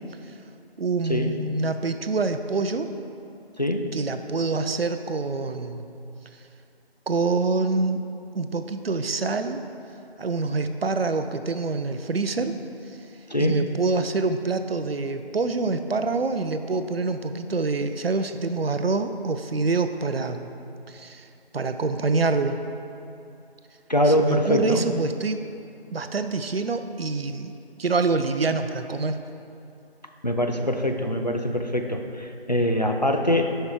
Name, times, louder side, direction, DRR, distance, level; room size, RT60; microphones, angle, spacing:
voice 1, 0.8-2.9 3.9-5.9 7.1-8.0 8.3-9.6 10.2-12.5 13.4-20.5 20.9-21.2 21.5-22.6 24.1-25.4 25.9-27.5 27.8-29.2, right 3 dB, 70° right, 9 dB, 0.5 m, -26 dB
voice 2, 3.6-3.9 13.3-13.6 23.9-24.9 30.2-33.6, equal, 45° left, 4 dB, 0.4 m, -23 dB
7.3 x 5.6 x 3.7 m, 2.6 s
figure-of-eight pair, 170°, 31 cm